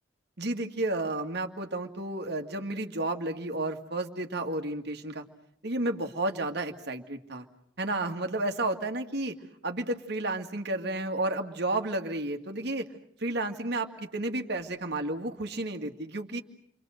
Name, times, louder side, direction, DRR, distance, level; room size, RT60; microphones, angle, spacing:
voice 1, 0.4-5.2 5.6-7.5 7.8-9.3 9.6-12.9 13.2-16.4, right 2 dB, 60° right, 5 dB, 2.2 m, -32 dB
30.0 x 24.0 x 6.6 m, 0.67 s
head